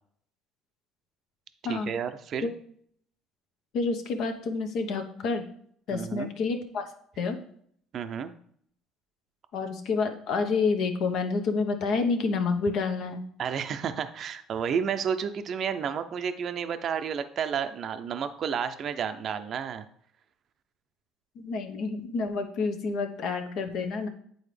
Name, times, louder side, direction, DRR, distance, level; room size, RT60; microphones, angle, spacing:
voice 1, 1.6-2.5 5.9-6.3 7.9-8.3 13.4-19.8, right 7 dB, 50° right, 9 dB, 0.5 m, -31 dB
voice 2, 3.7-5.4 5.9-6.8 7.2-7.4 9.5-13.2 21.3-24.1, left 4 dB, 65° left, 6 dB, 0.9 m, -28 dB
8.6 x 4.0 x 3.3 m, 0.64 s
supercardioid pair, 85°, 0 cm